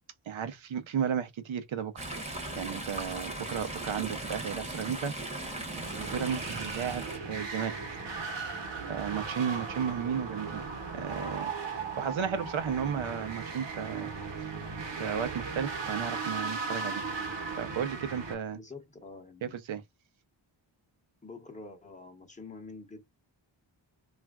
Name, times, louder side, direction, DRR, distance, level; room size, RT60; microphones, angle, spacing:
voice 1, 0.3-5.1 6.0-7.8 8.9-10.6 10.9-14.1 15.0-17.0 17.6-18.6 19.4-19.8, right 7 dB, 85° right, 0.7 m, -34 dB
Chatter / Stream, 2.0-7.2, right 2 dB, 15° right, 0.8 m, -38 dB
sound 1, 5.4-18.3, right 4 dB, 70° right, 1.0 m, -37 dB
voice 2, 18.5-19.6 21.2-23.0, left 3 dB, 15° left, 0.8 m, -47 dB
3.2 x 2.5 x 2.3 m
wide cardioid pair, 145°, 46 cm